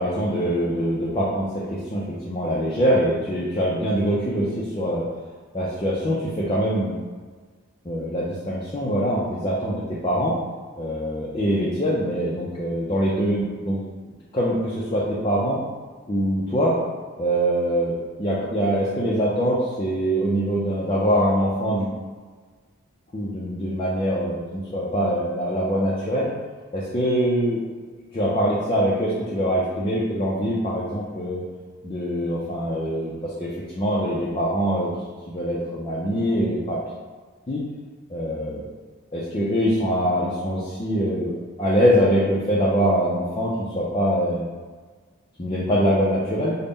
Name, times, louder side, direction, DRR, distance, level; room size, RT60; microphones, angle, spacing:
voice 1, 0.0-5.0 5.5-7.0 7.9-10.3 10.8-13.8 14.3-15.6 16.1-16.7 17.2-21.9 23.1-26.3 26.7-27.6 28.1-31.4 31.8-34.9 35.3-36.8 37.5-37.6 38.1-38.6 39.1-41.3 41.6-44.5 45.4-46.6, equal, 25° left, -7 dB, 0.4 m, -23 dB
3.9 x 2.1 x 3.5 m, 1.4 s
head